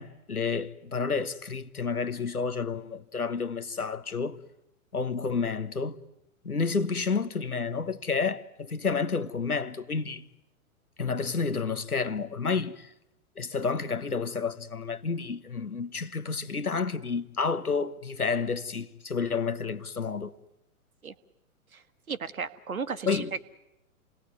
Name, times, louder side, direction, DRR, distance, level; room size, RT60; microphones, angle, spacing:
voice 1, 0.0-4.4 4.9-6.0 6.4-10.3 11.0-12.9 13.4-20.3 23.1-23.3, left 5 dB, 85° left, 1.1 m, -30 dB
voice 2, 22.1-23.4, right 5 dB, 70° right, 1.5 m, -34 dB
28.5 x 19.5 x 9.4 m
figure-of-eight pair, 110°, 43 cm